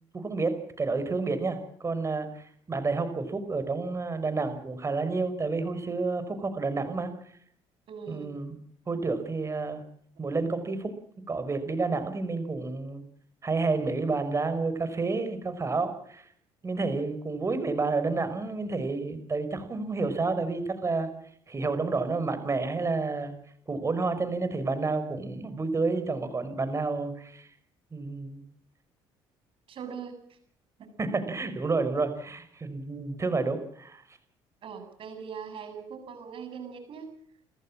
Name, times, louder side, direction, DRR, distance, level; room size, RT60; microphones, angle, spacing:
voice 1, 0.1-7.1 8.1-8.6 8.9-9.8 10.2-10.9 11.3-13.0 13.4-16.3 16.6-21.1 21.5-23.3 23.7-27.5 27.9-28.4 31.0-34.0, right 3 dB, 25° right, 11 dB, 5.2 m, -30 dB
voice 2, 7.9-8.3 29.7-30.4 34.6-37.1, right 6 dB, 55° right, 8 dB, 7.7 m, -41 dB
29.5 x 14.5 x 7.5 m, 0.65 s
supercardioid pair, 85°, 11 cm